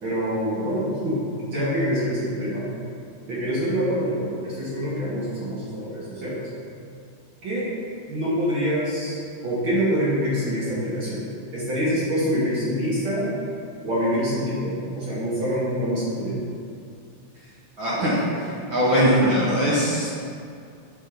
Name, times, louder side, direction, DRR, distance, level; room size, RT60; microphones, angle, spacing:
voice 1, 0.0-1.2 1.5-2.7 3.3-6.4 7.4-7.7 8.1-13.3 13.8-16.4, equal, 40° right, -8 dB, 2.2 m, -25 dB
voice 2, 17.8-20.2, equal, 60° right, -8 dB, 1.3 m, -21 dB
9.0 x 5.3 x 5.2 m, 2.4 s
omnidirectional pair, 3.9 m